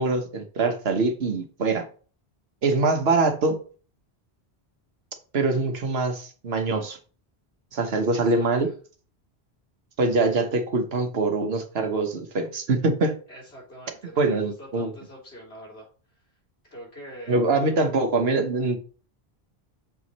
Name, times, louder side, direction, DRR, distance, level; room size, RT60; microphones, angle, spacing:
voice 1, 0.0-1.9 2.6-3.6 5.3-7.0 7.7-8.7 10.0-13.1 14.2-14.9 17.3-18.8, right 3 dB, 75° right, 6 dB, 1.3 m, -23 dB
voice 2, 8.1-8.7 13.3-15.9 16.1-16.3 16.6-17.9, equal, 85° left, -3 dB, 3.5 m, -43 dB
6.9 x 4.7 x 4.1 m, 0.39 s
omnidirectional pair, 1.1 m